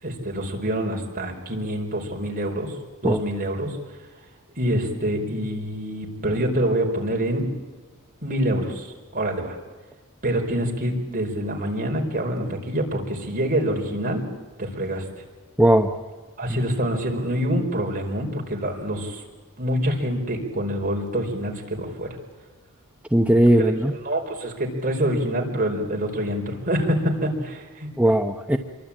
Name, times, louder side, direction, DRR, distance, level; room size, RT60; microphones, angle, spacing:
voice 1, 0.0-2.7 3.0-3.8 4.6-7.5 8.2-8.9 9.1-9.5 10.2-14.3 14.6-15.0 16.4-19.2 19.6-22.1 23.6-27.9, right 1 dB, 40° right, 1 dB, 4.7 m, -26 dB
voice 2, 15.6-15.9 23.1-23.9 28.0-28.6, right 1 dB, 5° right, 4 dB, 0.9 m, -18 dB
26.5 x 23.0 x 8.9 m, 1.3 s
head